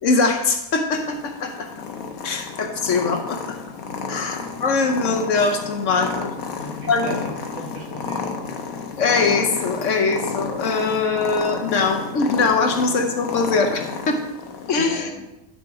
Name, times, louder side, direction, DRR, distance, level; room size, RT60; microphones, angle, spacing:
voice 1, 0.0-1.7 2.2-3.4 4.1-6.4 6.9-7.2 9.0-14.2 14.7-15.1, left 4 dB, 65° left, 5 dB, 1.1 m, -22 dB
Purr, 0.9-14.8, left 5 dB, 80° left, 1.3 m, -31 dB
voice 2, 4.3-4.8 6.6-8.4 14.9-15.2, equal, 55° right, -2 dB, 2.2 m, -38 dB
10.5 x 4.4 x 4.7 m, 0.94 s
omnidirectional pair, 1.5 m